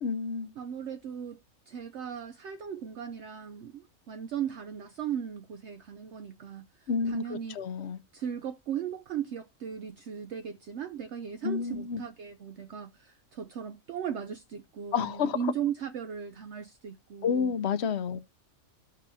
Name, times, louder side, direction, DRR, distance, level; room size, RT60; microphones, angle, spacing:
voice 1, 0.0-0.5 6.9-8.0 11.4-12.0 14.9-15.4 17.2-18.2, left 6 dB, 60° left, 0.9 m, -30 dB
voice 2, 0.6-1.4 1.7-7.6 8.1-17.5 18.1-18.2, right 8 dB, 65° right, 0.8 m, -37 dB
14.5 x 5.4 x 2.7 m
omnidirectional pair, 1.4 m